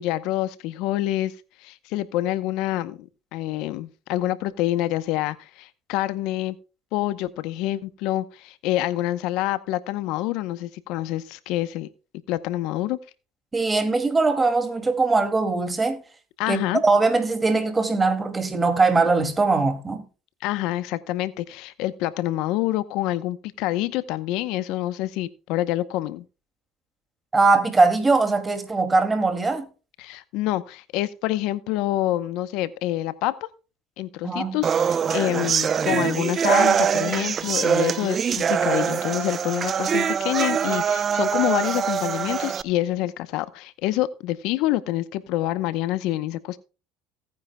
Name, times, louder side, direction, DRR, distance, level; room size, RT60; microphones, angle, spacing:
voice 1, 0.0-1.3 1.6-6.6 6.9-11.9 12.3-13.0 16.4-16.8 20.4-26.2 30.0-33.5 34.0-46.6, left 15 dB, 70° left, 0.8 m, -27 dB
voice 2, 13.5-16.0 16.5-20.0 27.3-29.7 34.2-34.6, right 3 dB, 20° right, 2.3 m, -21 dB
sound 1, 34.6-42.6, right 7 dB, 35° right, 0.6 m, -23 dB
17.5 x 9.5 x 2.2 m
supercardioid pair, 105°, 0 cm